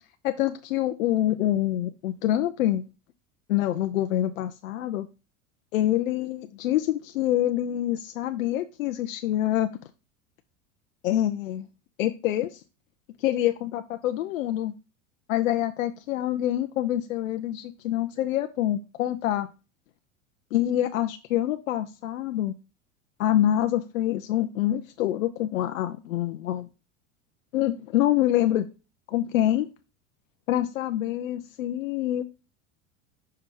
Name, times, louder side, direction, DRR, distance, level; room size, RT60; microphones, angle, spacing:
voice 1, 0.2-2.9 3.5-5.1 5.7-9.7 11.0-11.7 12.0-12.6 13.2-14.7 15.3-19.5 20.5-22.5 23.2-26.7 27.5-28.7 29.1-29.7 30.5-32.3, left 13 dB, 80° left, 0.7 m, -26 dB
5.7 x 5.6 x 3.7 m
hypercardioid pair, 90°, 40 cm